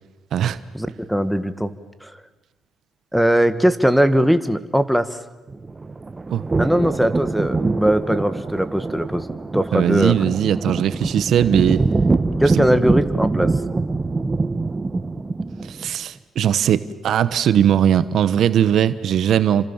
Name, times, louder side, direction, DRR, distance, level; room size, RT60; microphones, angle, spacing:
voice 1, 0.7-1.7 2.0-2.2 3.1-5.1 6.6-9.3 9.5-10.1 12.4-13.5, equal, ahead, 10 dB, 1.8 m, -19 dB
sound 1, 5.5-15.9, right 3 dB, 25° right, 1.3 m, -24 dB
voice 2, 9.7-11.8 12.5-12.8 15.6-19.7, right 9 dB, 70° right, 14 dB, 1.1 m, -19 dB
30.0 x 26.0 x 7.3 m, 1.1 s
cardioid pair, 90°, 0 cm